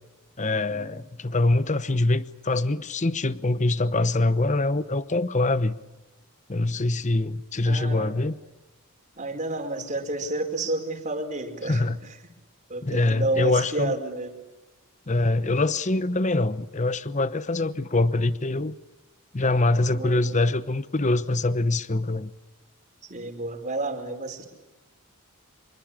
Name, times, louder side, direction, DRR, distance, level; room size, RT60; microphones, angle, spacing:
voice 1, 0.4-5.8 6.5-8.4 11.6-12.0 12.8-13.9 15.1-18.8 19.3-22.3, left 2 dB, 35° left, 14 dB, 0.9 m, -24 dB
voice 2, 7.7-8.1 9.2-12.2 12.7-14.3 19.9-20.3 23.1-24.5, right 2 dB, 35° right, 5 dB, 5.0 m, -30 dB
26.5 x 23.5 x 8.8 m, 1.1 s
head